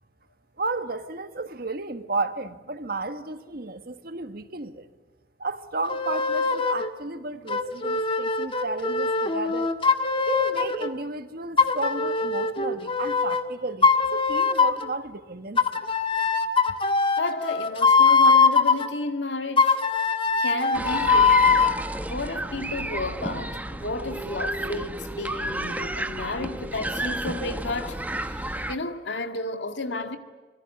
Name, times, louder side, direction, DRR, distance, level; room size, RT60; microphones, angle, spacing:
voice 1, 0.6-4.9 5.4-9.7 10.3-15.8 16.7-16.8, right 3 dB, 50° right, 1.6 m, -33 dB
sound 1, 5.9-6.9 7.5-10.9 11.6-13.4 13.8-14.9 15.6-18.9 19.6-21.8, left 4 dB, 30° left, 1.5 m, -22 dB
voice 2, 17.2-19.8 20.4-21.6 22.1-30.2, left 2 dB, 70° left, 2.1 m, -32 dB
sound 2, 20.7-28.8, right 1 dB, 10° right, 1.0 m, -31 dB
26.0 x 22.0 x 9.6 m
head